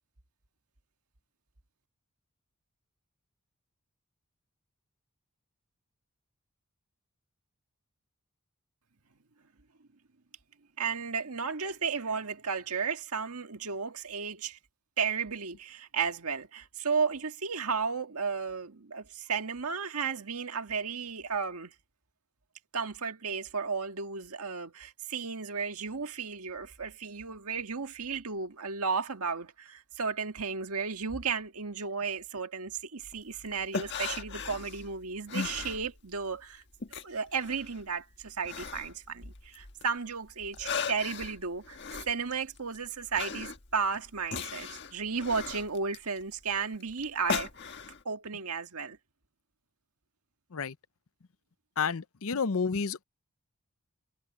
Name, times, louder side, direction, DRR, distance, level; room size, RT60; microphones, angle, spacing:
voice 1, 10.8-14.6 15.0-21.7 22.7-36.6 36.9-41.8 42.1-47.5 48.1-49.0, right 5 dB, 85° right, 1.7 m, -34 dB
sound 1, 33.0-36.3 36.6-39.9 40.3-48.0, left 5 dB, 50° left, 1.5 m, -38 dB
voice 2, 51.8-53.0, left 5 dB, 70° left, 0.7 m, -30 dB
head